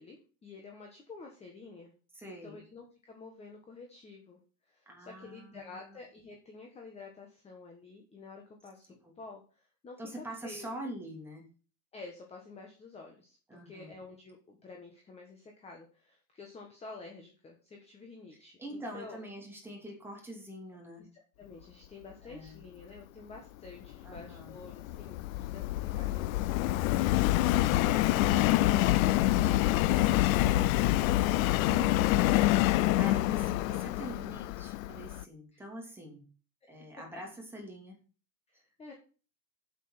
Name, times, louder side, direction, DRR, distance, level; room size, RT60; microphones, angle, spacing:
voice 1, 0.0-1.9 2.2-10.7 11.9-19.2 21.0-27.5 30.4-30.7 32.7-33.1 35.5-35.6 36.6-36.7 38.5-38.9, left 3 dB, 15° left, 2 dB, 1.3 m, -50 dB
voice 2, 2.1-2.6 4.9-6.0 8.9-9.1 10.0-11.5 13.5-13.9 18.6-21.0 22.2-22.6 24.0-24.5 27.5-36.2 36.7-38.0, right 1 dB, 5° right, 0 dB, 2.7 m, -45 dB
Subway metro underground, 23.9-35.2, left 16 dB, 60° left, 0.6 m, -26 dB
7.7 x 7.5 x 5.8 m, 0.36 s
supercardioid pair, 170°, 47 cm